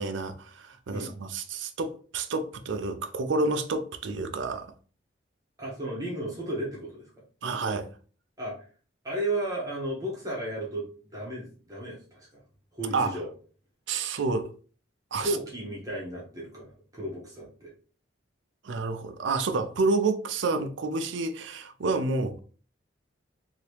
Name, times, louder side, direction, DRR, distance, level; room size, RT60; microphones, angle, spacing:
voice 1, 0.0-4.7 7.4-7.9 12.9-13.1 13.9-14.5 15.1-15.4 18.6-22.4, right 3 dB, 65° right, 0.5 m, -29 dB
voice 2, 5.6-7.1 8.4-8.7 9.0-12.4 12.7-13.3 15.2-17.7, right 1 dB, 20° right, 0.9 m, -34 dB
2.9 x 2.7 x 3.2 m
head